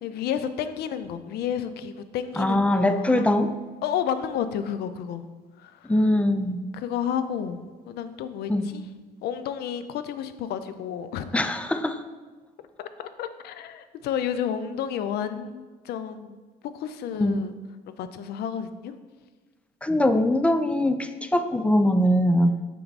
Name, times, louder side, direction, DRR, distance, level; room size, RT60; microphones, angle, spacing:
voice 1, 0.0-3.3 3.8-5.2 5.6-5.8 6.7-8.8 9.2-11.3 12.8-16.4 16.7-17.5 17.9-18.9, left 8 dB, 70° left, 11 dB, 0.5 m, -31 dB
voice 2, 2.4-3.5 5.8-6.6 8.5-8.7 11.3-12.0 17.1-17.4 19.8-22.6, left 1 dB, 5° left, 9 dB, 0.4 m, -22 dB
6.8 x 4.6 x 4.1 m, 1.3 s
cardioid pair, 110°, 17 cm